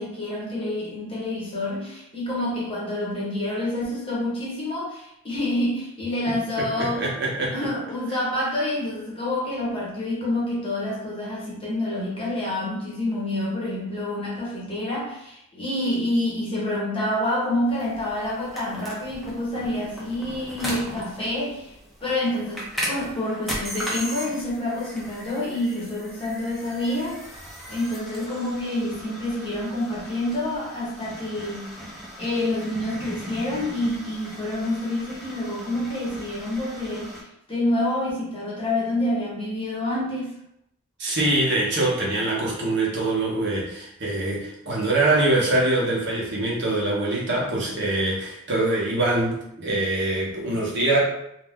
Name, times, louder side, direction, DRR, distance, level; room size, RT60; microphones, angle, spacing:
voice 1, 0.0-7.1 7.5-21.7 22.0-27.2 27.7-31.8 32.2-37.1 37.5-40.3, left 1 dB, 25° left, -5 dB, 0.8 m, -27 dB
voice 2, 6.8-7.5 41.0-51.0, right 2 dB, 55° right, -4 dB, 0.8 m, -24 dB
sound 1, 17.7-37.2, equal, ahead, 0.5 m, -38 dB
2.5 x 2.1 x 3.4 m, 0.79 s
head